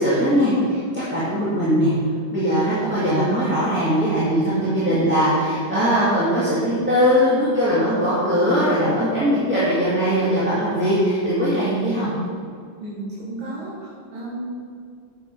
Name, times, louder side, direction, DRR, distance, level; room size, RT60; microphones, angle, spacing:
voice 1, 0.0-1.9 2.3-12.1, equal, 5° right, -11 dB, 1.8 m, -20 dB
voice 2, 12.8-14.5, right 1 dB, 65° right, -9 dB, 2.7 m, -33 dB
9.9 x 7.2 x 4.6 m, 2.2 s
omnidirectional pair, 2.3 m